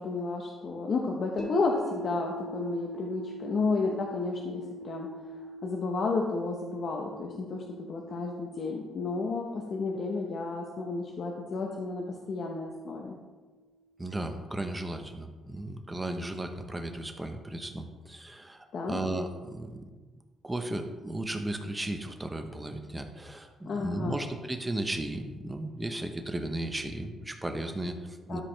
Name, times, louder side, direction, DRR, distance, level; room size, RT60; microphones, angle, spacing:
voice 1, 0.0-5.1 5.6-13.2 18.7-19.0 23.6-24.3 28.3-28.4, left 3 dB, 55° left, 0 dB, 0.9 m, -32 dB
sound 1, 1.4-13.5, right 1 dB, 30° left, 1.3 m, -45 dB
voice 2, 14.0-19.9 20.4-28.4, right 1 dB, 15° right, 6 dB, 0.9 m, -35 dB
12.5 x 5.0 x 3.3 m, 1.4 s
cardioid pair, 90°, 0 cm